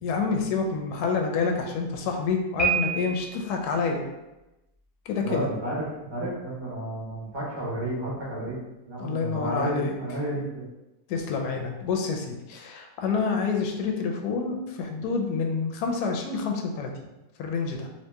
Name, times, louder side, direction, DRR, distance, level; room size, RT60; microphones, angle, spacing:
voice 1, 0.0-4.0 5.1-5.5 9.0-9.9 11.1-16.9 17.4-17.9, left 5 dB, 70° left, 2 dB, 1.0 m, -28 dB
Piano, 2.6-3.5, right 5 dB, ahead, 1.0 m, -27 dB
voice 2, 5.2-10.6, right 1 dB, 25° right, -7 dB, 0.7 m, -31 dB
2.8 x 2.8 x 3.3 m, 0.99 s
omnidirectional pair, 1.8 m